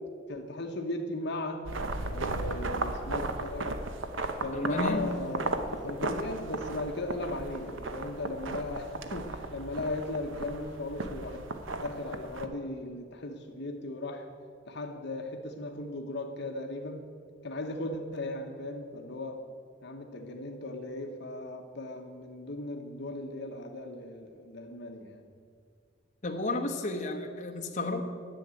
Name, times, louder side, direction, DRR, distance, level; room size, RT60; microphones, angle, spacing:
voice 1, 0.3-1.7 2.1-3.8 4.4-11.4 11.8-14.3 14.7-17.1 17.4-19.5 19.8-25.2, left 2 dB, 60° left, 4 dB, 1.0 m, -37 dB
sound 1, 1.6-12.5, right 2 dB, 90° right, 0.9 m, -35 dB
voice 2, 4.5-5.2 26.2-28.0, left 2 dB, 40° left, 2 dB, 1.1 m, -32 dB
10.5 x 7.3 x 9.0 m, 2.1 s
head